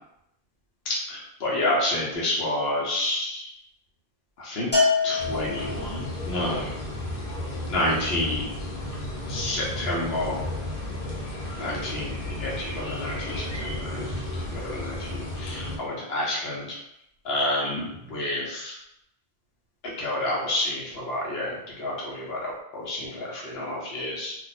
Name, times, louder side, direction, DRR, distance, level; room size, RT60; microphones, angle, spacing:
voice 1, 0.9-3.5 4.4-4.7 5.0-6.7 7.7-8.5 9.3-10.4 11.6-14.0 14.5-16.8 17.2-18.8 20.0-24.4, left 1 dB, 80° left, -4 dB, 1.1 m, -29 dB
Bell, 4.7-6.1, left 4 dB, 10° left, 0.8 m, -24 dB
sound 1, 5.2-15.8, left 1 dB, 50° left, 0.8 m, -33 dB
2.5 x 2.3 x 4.0 m, 0.81 s
omnidirectional pair, 1.0 m